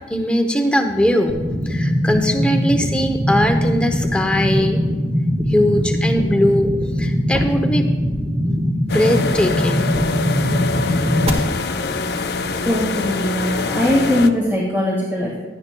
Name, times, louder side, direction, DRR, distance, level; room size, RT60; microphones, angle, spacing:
voice 1, 0.1-1.3 1.6-4.8 5.5-6.7 7.0-7.9 8.5-8.6 8.9-9.9 11.0-11.4, equal, 5° left, 4 dB, 0.7 m, -20 dB
sound 1, 1.3-11.3, equal, 35° right, 1.4 m, -21 dB
sound 2, 8.9-14.3, left 4 dB, 65° left, 0.6 m, -24 dB
voice 2, 12.6-15.4, left 1 dB, 15° right, -5 dB, 1.6 m, -20 dB
17.0 x 12.0 x 2.2 m, 1.5 s
head